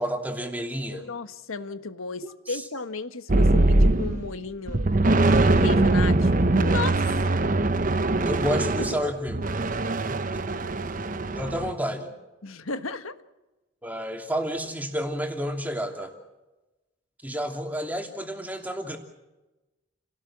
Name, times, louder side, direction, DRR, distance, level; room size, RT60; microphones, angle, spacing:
voice 1, 0.0-1.1 2.2-2.6 8.2-9.4 10.1-10.2 11.3-12.1 13.8-16.1 17.2-19.0, equal, 10° right, 3 dB, 2.8 m, -30 dB
voice 2, 0.9-4.8 5.2-7.1 8.8-9.1 12.4-13.2, left 4 dB, 80° left, 10 dB, 1.4 m, -34 dB
sound 1, 3.3-4.3 4.7-11.7, right 2 dB, 40° right, 0.8 m, -22 dB
30.0 x 18.0 x 7.5 m, 1.1 s
head